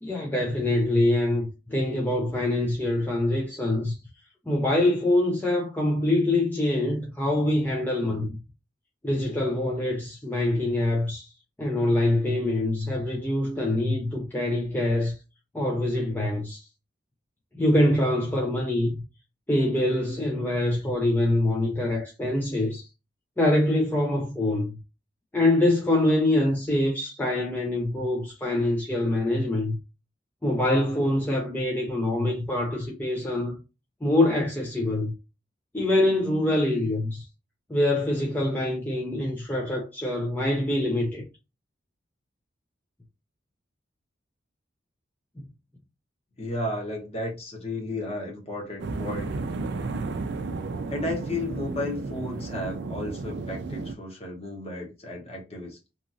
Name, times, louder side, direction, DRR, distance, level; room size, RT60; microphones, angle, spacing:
voice 1, 0.0-4.0 4.5-8.4 9.0-11.3 11.6-15.2 15.5-16.7 17.5-18.9 19.5-22.9 23.4-24.8 25.3-29.8 30.4-33.6 34.0-35.1 35.7-37.3 37.7-41.2, left 1 dB, 10° left, 0.4 m, -24 dB
voice 2, 46.4-49.4 50.9-55.8, left 1 dB, 35° left, 0.9 m, -33 dB
sound 1, 48.8-53.9, right 3 dB, 65° right, 0.4 m, -33 dB
2.8 x 2.5 x 2.5 m
head